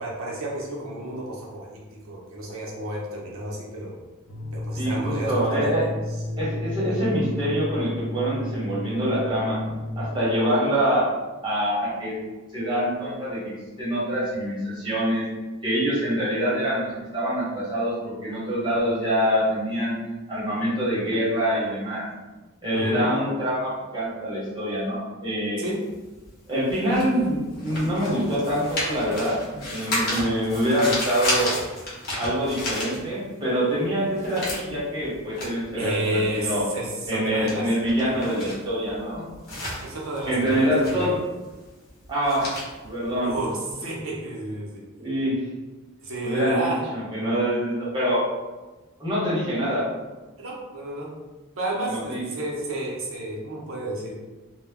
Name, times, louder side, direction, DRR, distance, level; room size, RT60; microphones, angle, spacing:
voice 1, 0.0-3.9 4.5-5.7 22.7-23.1 25.6-25.8 35.8-37.7 38.0-38.3 39.8-41.1 43.2-44.8 46.0-46.9 50.4-51.2 51.6-54.2, right 1 dB, 75° right, -3 dB, 0.7 m, -31 dB
sound 1, 4.3-10.1, left 1 dB, 65° left, 0.5 m, -32 dB
voice 2, 4.8-5.9 6.4-9.6 10.0-11.1 11.4-12.1 12.5-15.3 15.6-20.0 20.3-22.1 22.6-25.6 26.5-31.6 32.2-36.6 37.1-39.2 40.3-41.2 42.1-43.3 45.0-45.4 46.2-48.3 49.0-49.9 51.9-52.2, equal, 20° right, -8 dB, 1.0 m, -25 dB
sound 2, 25.7-33.5 33.8-43.9, left 1 dB, 50° left, 0.8 m, -33 dB
2.1 x 2.0 x 3.5 m, 1.2 s
head